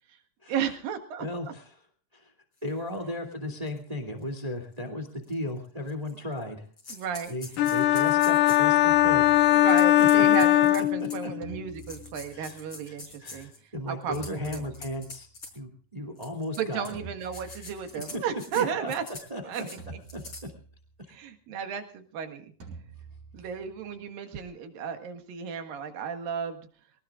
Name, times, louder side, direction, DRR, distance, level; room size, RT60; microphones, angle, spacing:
voice 1, 0.5-1.3 6.9-7.4 9.5-13.5 13.9-14.6 16.6-19.0 19.4-19.8 21.1-22.5 23.3-26.6, right 7 dB, 85° right, 6 dB, 3.5 m, -33 dB
voice 2, 1.2-1.7 2.1-2.3 2.6-6.7 7.3-9.4 10.0-10.1 12.3-12.6 12.9-15.3 15.5-16.9 17.3-17.7 18.5-18.9 19.3-19.4 20.1-20.5, left 1 dB, 15° right, 6 dB, 1.9 m, -35 dB
sound 1, 2.9-3.0 3.7-3.8 4.2-4.3 5.2-5.3 5.9-6.4 6.8-8.7 9.7-11.3 11.8-13.6 14.0-15.5 16.2-16.9 17.2-18.6 18.9-19.3 19.5-19.8 20.1-20.4, left 3 dB, 35° left, 5.3 m, -44 dB
sound 2, 7.6-11.5, left 14 dB, 80° left, 2.4 m, -20 dB
sound 3, 8.9-10.2 11.4-13.1 14.1-15.5 16.9-18.3 19.8-21.0 22.6-24.0, right 4 dB, 65° right, 6.6 m, -47 dB
23.5 x 18.5 x 2.4 m, 0.43 s
omnidirectional pair, 3.9 m